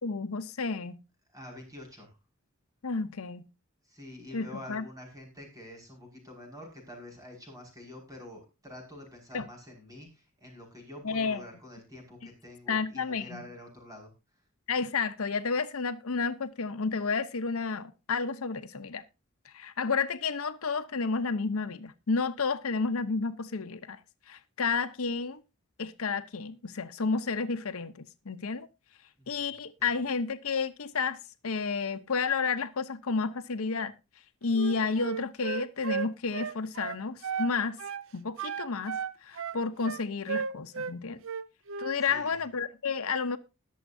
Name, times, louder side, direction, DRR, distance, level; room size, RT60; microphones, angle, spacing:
voice 1, 0.0-1.0 2.8-3.5 4.3-4.8 9.3-9.5 11.0-11.4 12.7-13.4 14.7-19.0 19.5-24.0 24.3-25.4 25.8-28.7 29.3-31.2 31.4-33.9 34.4-37.8 38.1-41.2 41.8-43.4, left 4 dB, 75° left, 0.8 m, -31 dB
voice 2, 1.3-2.2 3.8-14.1 29.2-29.9 42.0-42.5, left 1 dB, 15° right, 5.6 m, -47 dB
Wind instrument woodwind instrument, 34.5-37.5 37.8-38.1 38.4-40.9 41.2-42.0, right 6 dB, 60° right, 0.6 m, -34 dB
20.5 x 7.2 x 2.7 m
head